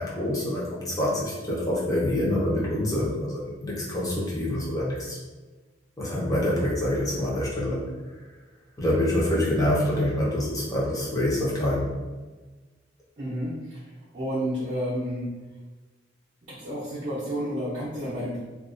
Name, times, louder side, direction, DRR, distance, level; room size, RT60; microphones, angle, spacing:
voice 1, 0.0-5.2 6.0-7.9 8.8-11.9, left 1 dB, 20° left, -6 dB, 0.6 m, -26 dB
voice 2, 13.2-13.8 14.1-15.3 16.4-18.4, equal, 45° right, -10 dB, 0.5 m, -30 dB
2.3 x 2.2 x 2.4 m, 1.3 s
head